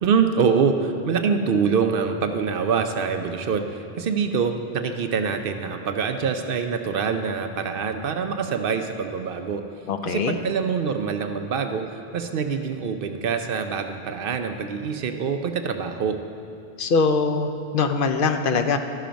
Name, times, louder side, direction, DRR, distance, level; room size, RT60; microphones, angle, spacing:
voice 1, 0.0-9.6 10.1-16.2, right 6 dB, 65° right, 7 dB, 0.7 m, -25 dB
voice 2, 9.9-10.4 16.8-18.8, left 4 dB, 65° left, 7 dB, 0.7 m, -22 dB
12.5 x 5.7 x 5.1 m, 2.5 s
omnidirectional pair, 1.0 m